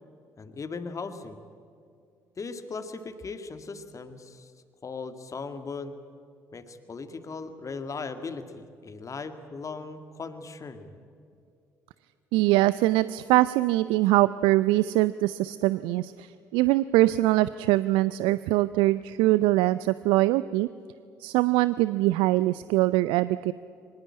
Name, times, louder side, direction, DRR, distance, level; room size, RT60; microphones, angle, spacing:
voice 1, 0.4-1.4 2.4-4.5 4.8-6.0 6.5-10.9, left 4 dB, 35° left, 9 dB, 2.0 m, -38 dB
voice 2, 12.3-20.7 21.2-23.5, right 17 dB, 65° right, 16 dB, 0.5 m, -23 dB
24.0 x 21.5 x 8.7 m, 2.5 s
figure-of-eight pair, 45°, 9 cm